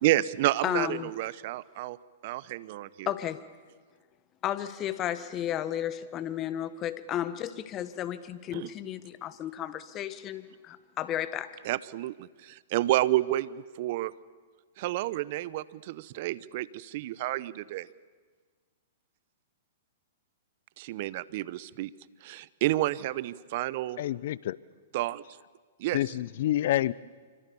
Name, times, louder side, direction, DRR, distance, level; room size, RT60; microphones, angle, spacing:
voice 1, 0.0-2.0 2.2-3.1 8.5-8.7 11.6-14.1 14.8-17.9 20.8-21.9 22.2-24.0 24.9-25.2 25.8-26.0, right 16 dB, 55° right, 19 dB, 0.9 m, -30 dB
voice 2, 0.6-1.1 3.1-3.4 4.4-11.5, left 11 dB, 30° left, 14 dB, 1.5 m, -33 dB
voice 3, 24.0-24.6 25.9-26.9, left 13 dB, 60° left, 20 dB, 0.8 m, -28 dB
27.0 x 25.0 x 7.1 m, 1.5 s
hypercardioid pair, 125°, 0 cm